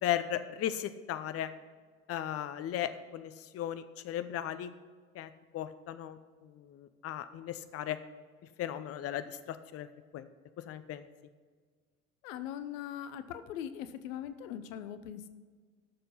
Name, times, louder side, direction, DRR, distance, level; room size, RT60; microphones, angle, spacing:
voice 1, 0.0-1.5 2.1-4.7 5.1-8.0 8.6-9.9 10.1-10.3 10.6-11.1, left 11 dB, 35° left, 12 dB, 0.7 m, -36 dB
voice 2, 12.2-15.3, left 10 dB, 65° left, 12 dB, 0.8 m, -41 dB
13.0 x 6.7 x 5.6 m, 1.5 s
figure-of-eight pair, 60°, 43 cm